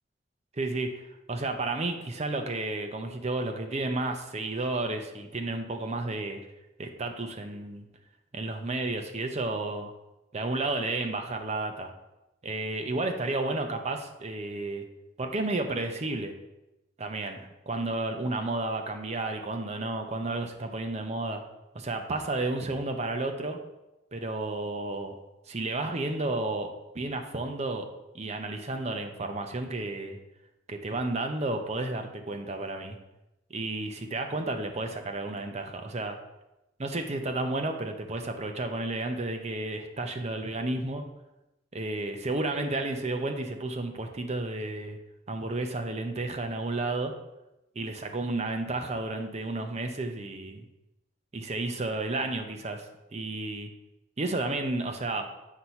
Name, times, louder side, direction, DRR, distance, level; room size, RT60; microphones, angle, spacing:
voice 1, 0.6-1.0 1.3-6.4 6.8-7.8 8.3-9.9 10.3-11.9 12.4-14.8 15.2-16.3 17.0-21.4 21.7-23.6 24.1-25.1 25.5-27.9 28.1-30.2 30.7-33.0 33.5-36.2 36.8-41.0 41.7-45.0 45.3-47.1 47.8-50.6 51.3-52.9 53.1-53.7 54.2-55.2, right 2 dB, 40° right, 5 dB, 0.7 m, -32 dB
7.8 x 2.8 x 5.7 m, 0.95 s
head